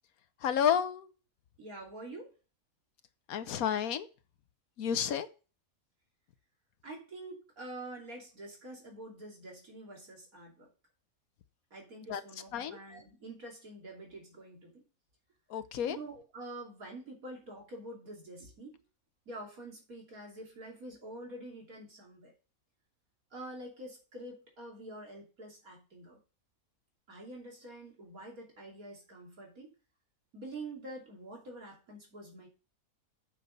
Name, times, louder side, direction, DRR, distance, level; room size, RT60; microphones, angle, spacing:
voice 1, 0.4-1.1 3.3-4.1 4.8-5.3 12.1-12.2 12.5-12.8 15.5-16.0, left 8 dB, 85° left, 1.3 m, -30 dB
voice 2, 1.6-2.3 6.8-10.7 11.7-14.8 15.8-18.8 19.3-22.3 23.3-26.2 27.1-29.7 30.3-32.5, right 1 dB, 80° right, 3.3 m, -46 dB
8.6 x 6.1 x 5.4 m
omnidirectional pair, 1.5 m